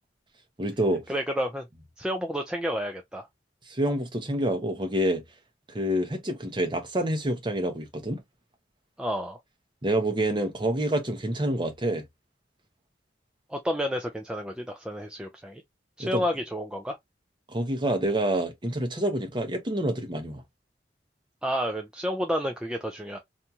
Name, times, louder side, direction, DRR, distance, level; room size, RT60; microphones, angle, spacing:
voice 1, 0.6-1.0 3.7-5.2 5.7-8.2 9.8-12.0 16.0-16.2 17.5-20.4, right 1 dB, 25° right, 0.7 m, -27 dB
voice 2, 1.1-1.6 2.0-3.3 9.0-9.4 13.5-15.6 16.0-17.0 21.4-23.2, equal, 5° right, 0.3 m, -30 dB
2.6 x 2.3 x 2.8 m
head